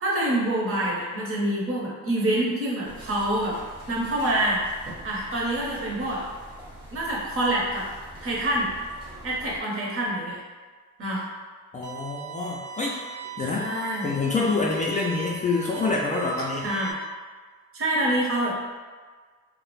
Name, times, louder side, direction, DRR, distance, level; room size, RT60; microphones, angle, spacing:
voice 1, 0.0-3.5 3.9-4.6 5.0-6.2 6.9-7.9 8.2-8.7 9.2-10.4 11.0-11.2 13.6-14.1 16.6-16.9 17.7-18.5, right 1 dB, 45° right, -4 dB, 0.8 m, -26 dB
sound 1, 2.8-9.6, right 1 dB, 15° right, 0.7 m, -44 dB
voice 2, 11.7-13.0 13.4-13.7 14.0-16.7, left 3 dB, 25° left, -4 dB, 0.3 m, -26 dB
sound 2, 11.8-16.9, right 6 dB, 75° right, 0.5 m, -39 dB
2.3 x 2.1 x 3.0 m, 1.5 s
cardioid pair, 90°, 30 cm